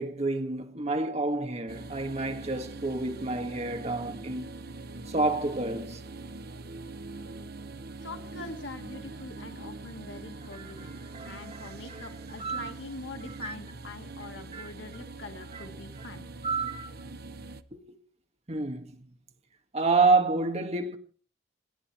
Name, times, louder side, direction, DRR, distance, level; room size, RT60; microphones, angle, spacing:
voice 1, 0.0-4.5 5.1-6.0 10.5-12.1 12.4-12.7 13.4-13.5 14.5-14.7 15.5-15.6 16.0-16.1 16.4-16.9 17.7-18.0 18.5-19.1 19.7-21.0, right 3 dB, 35° right, 1.9 m, -29 dB
sound 1, 1.7-17.6, right 2 dB, 55° right, 0.9 m, -43 dB
voice 2, 8.0-11.0 11.2-16.2, left 3 dB, 80° left, 2.2 m, -44 dB
28.5 x 10.5 x 4.4 m
head